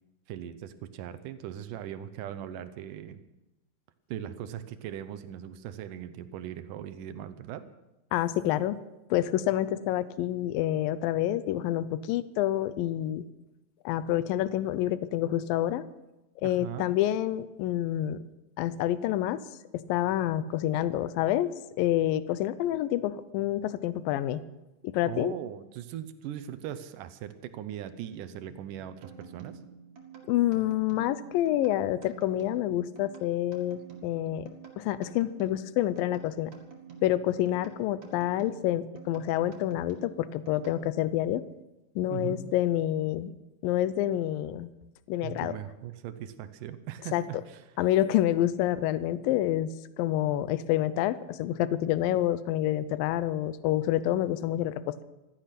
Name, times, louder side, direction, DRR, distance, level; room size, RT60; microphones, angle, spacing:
voice 1, 0.3-3.2 4.1-7.6 16.4-16.9 25.1-29.6 42.1-42.4 45.2-47.6, right 10 dB, 75° right, 11 dB, 2.0 m, -39 dB
voice 2, 8.1-8.8 9.1-13.2 13.9-15.9 16.4-18.2 18.6-19.4 19.7-21.5 21.8-24.4 24.8-25.4 30.3-34.5 34.8-36.5 37.0-41.4 42.0-43.3 43.6-44.7 45.1-45.5 47.1-47.2 47.8-55.0, left 13 dB, 80° left, 15 dB, 2.1 m, -28 dB
sound 1, 29.0-41.2, right 6 dB, 50° right, 3.0 m, -49 dB
15.5 x 13.5 x 5.9 m, 0.99 s
omnidirectional pair, 4.7 m